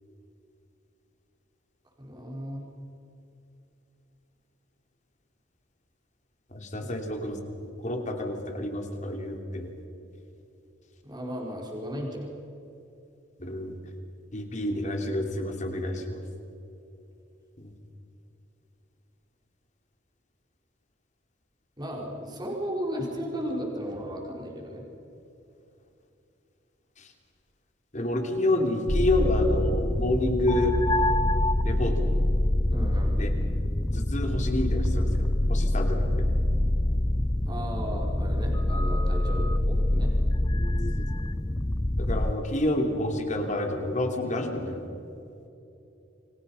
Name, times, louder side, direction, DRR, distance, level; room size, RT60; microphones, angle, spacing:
voice 1, 2.0-2.6 6.8-6.9 11.0-12.3 21.8-24.8 32.7-33.2 37.5-40.1, equal, 20° right, -1 dB, 4.5 m, -35 dB
voice 2, 6.5-9.7 13.4-13.8 14.3-16.2 17.6-17.7 27.0-27.1 27.9-30.8 31.6-32.1 33.2-33.3 33.9-36.1 42.0-44.8, left 1 dB, 40° left, 3 dB, 3.1 m, -29 dB
sound 1, 28.9-42.3, left 1 dB, 20° left, 0.6 m, -25 dB
28.5 x 24.5 x 5.6 m, 2.8 s
head